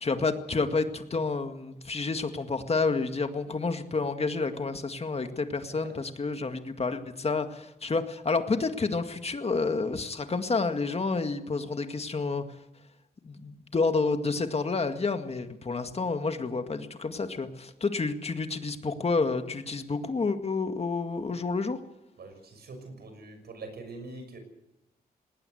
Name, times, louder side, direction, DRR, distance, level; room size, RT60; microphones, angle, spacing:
voice 1, 0.0-12.4 13.2-21.8, left 4 dB, 40° left, 7 dB, 2.0 m, -29 dB
voice 2, 22.2-24.4, right 3 dB, 75° right, 6 dB, 6.4 m, -44 dB
19.5 x 18.5 x 7.9 m, 0.91 s
wide cardioid pair, 95°, 17 cm